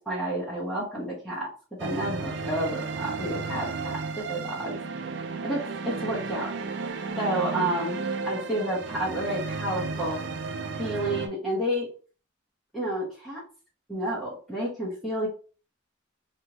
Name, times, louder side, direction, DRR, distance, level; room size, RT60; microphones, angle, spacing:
voice 1, 0.0-1.5 1.8-4.8 5.4-6.5 7.2-10.2 10.8-11.9 12.7-13.4 13.9-15.3, right 1 dB, ahead, -9 dB, 1.2 m, -30 dB
sound 1, 1.8-11.3, right 4 dB, 60° right, 0.4 m, -33 dB
3.3 x 3.3 x 2.9 m, 0.38 s
head